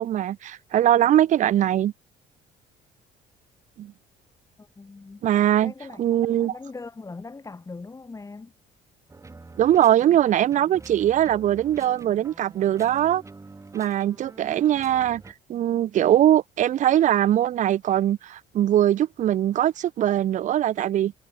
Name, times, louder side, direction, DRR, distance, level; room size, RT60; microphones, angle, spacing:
voice 1, 0.0-1.9 3.8-3.9 5.2-5.7 6.0-6.5 9.6-13.2 13.7-15.2 15.5-21.1, right 11 dB, 45° right, 0.5 m, -21 dB
voice 2, 4.6-5.3 5.6-6.0 6.4-8.5, left 3 dB, 20° left, 2.4 m, -40 dB
sound 1, 9.1-15.3, right 3 dB, 15° right, 2.2 m, -46 dB
cardioid pair, 110°, 17 cm